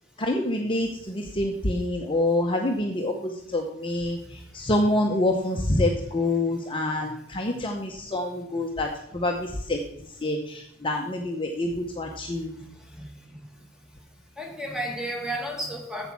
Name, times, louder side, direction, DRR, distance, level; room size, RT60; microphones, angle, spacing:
voice 1, 0.2-9.8 10.2-12.5, left 1 dB, 25° left, 2 dB, 0.8 m, -27 dB
voice 2, 12.3-13.6 14.4-16.1, right 1 dB, 5° right, 2 dB, 1.6 m, -34 dB
8.2 x 7.1 x 5.9 m, 0.73 s
head